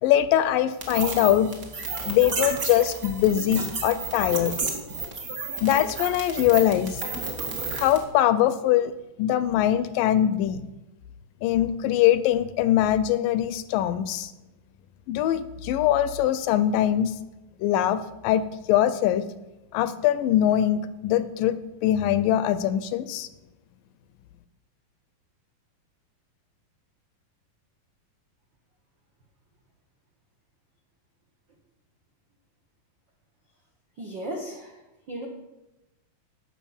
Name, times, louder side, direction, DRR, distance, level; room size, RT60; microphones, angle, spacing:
voice 1, 0.0-1.5 2.1-4.6 5.6-7.0 7.8-8.9 9.2-10.6 11.4-14.3 15.1-17.1 17.6-19.3 19.7-23.3, left 11 dB, 80° left, 14 dB, 2.1 m, -22 dB
sound 1, 0.8-8.0, right 3 dB, 55° right, 0.9 m, -32 dB
voice 2, 34.0-34.8 35.1-35.3, right 1 dB, 85° right, 1 dB, 1.0 m, -35 dB
10.0 x 6.2 x 7.1 m, 0.99 s
omnidirectional pair, 4.0 m